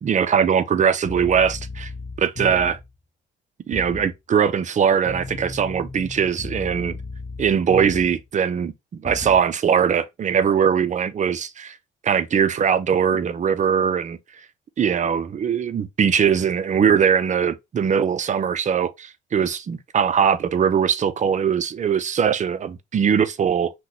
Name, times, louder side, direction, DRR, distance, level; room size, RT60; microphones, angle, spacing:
voice 1, 0.0-1.9 2.2-2.8 3.7-7.0 7.4-11.8 12.0-14.2 14.8-23.7, right 7 dB, 40° right, 0.5 m, -21 dB
sound 1, 1.0-2.9 3.7-4.1 5.1-8.2 9.0-9.4, left 3 dB, 25° left, 0.7 m, -35 dB
2.9 x 2.2 x 3.8 m
cardioid pair, 90°, 20 cm